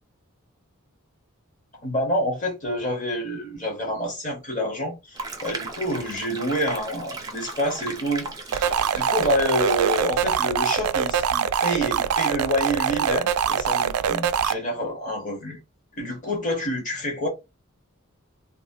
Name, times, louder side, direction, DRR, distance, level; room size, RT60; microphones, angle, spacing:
voice 1, 1.8-15.6 16.0-17.3, equal, 35° left, 1.3 m, -28 dB
sound 1, 5.1-10.0, right 3 dB, 15° right, 0.6 m, -36 dB
sound 2, 8.5-14.5, right 8 dB, 85° right, 0.3 m, -23 dB
3.1 x 2.2 x 2.7 m
head